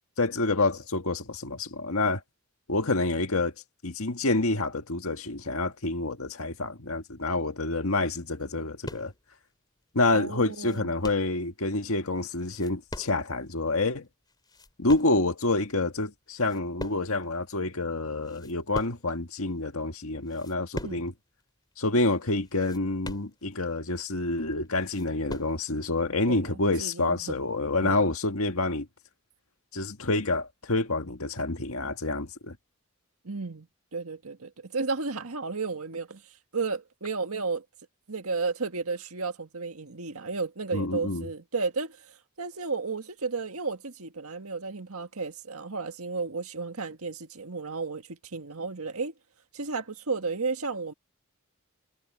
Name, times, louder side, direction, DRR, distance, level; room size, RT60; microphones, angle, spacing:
voice 1, 0.2-2.2 2.7-3.5 3.8-9.1 9.9-14.1 14.8-21.1 21.8-28.9 29.7-32.6 40.7-41.3, left 2 dB, 70° left, 1.9 m, -28 dB
sound 1, 8.8-9.3 9.8-9.9 10.2-11.4 12.4-13.4 13.7-13.8 14.3-15.2 15.8-16.1 16.3-17.4 17.7-17.8 18.1-19.2 19.7-19.8 20.3-21.1 21.4-21.5 21.9-22.0 22.4-23.7 24.2-24.3 24.6-25.6, left 1 dB, 20° left, 2.9 m, -42 dB
voice 2, 10.1-10.9 20.8-21.0 26.3-26.5 26.8-27.4 27.8-28.1 33.2-33.7 33.9-36.2 36.5-37.7 38.1-49.1 49.5-50.9, right 4 dB, 75° right, 1.8 m, -33 dB
head